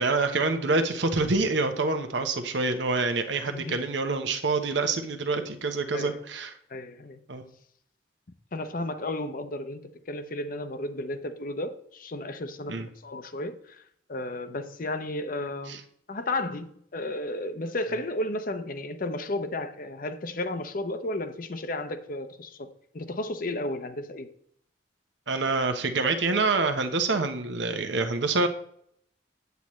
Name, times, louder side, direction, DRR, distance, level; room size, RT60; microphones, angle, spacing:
voice 1, 0.0-6.5 7.3-7.4 12.7-12.9 15.7-15.8 25.3-28.5, right 3 dB, 75° right, 1.0 m, -26 dB
voice 2, 3.4-3.8 5.9-6.2 6.7-7.2 8.5-13.8 14.1-15.8 16.1-22.7 22.9-24.3, left 1 dB, 50° left, 0.7 m, -33 dB
8.6 x 8.2 x 3.1 m
head